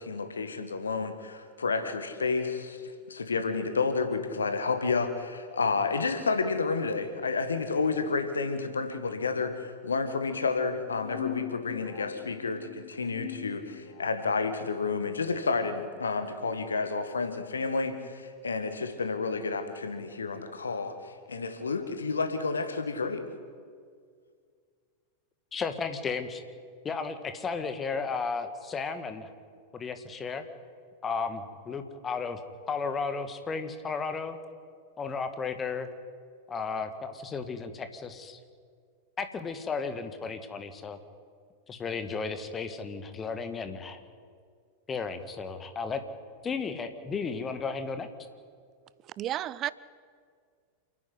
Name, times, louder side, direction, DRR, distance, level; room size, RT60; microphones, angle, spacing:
voice 1, 0.0-23.2, left 4 dB, 75° left, 1.8 m, -30 dB
sound 1, 10.9-14.3, left 15 dB, 50° left, 1.1 m, -41 dB
voice 2, 25.5-26.4 26.8-29.3 29.7-30.4 31.0-32.4 32.7-34.4 35.0-35.9 36.5-38.4 39.2-41.0 41.7-44.0 44.9-46.0 46.4-48.1, left 5 dB, 20° left, 1.7 m, -34 dB
voice 3, 49.2-49.7, right 12 dB, 30° right, 0.4 m, -31 dB
28.0 x 9.9 x 9.6 m
figure-of-eight pair, 90°, 0 cm